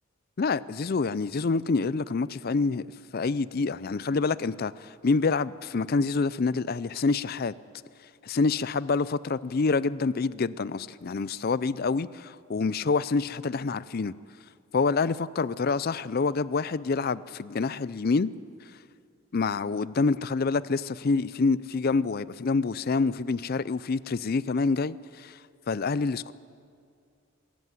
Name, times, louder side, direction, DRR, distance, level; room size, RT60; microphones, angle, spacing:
voice 1, 0.4-2.8 3.1-7.5 8.2-14.1 14.7-18.3 19.3-25.4 25.7-26.3, left 4 dB, 45° left, 18 dB, 0.4 m, -27 dB
23.5 x 14.0 x 9.5 m, 2.3 s
head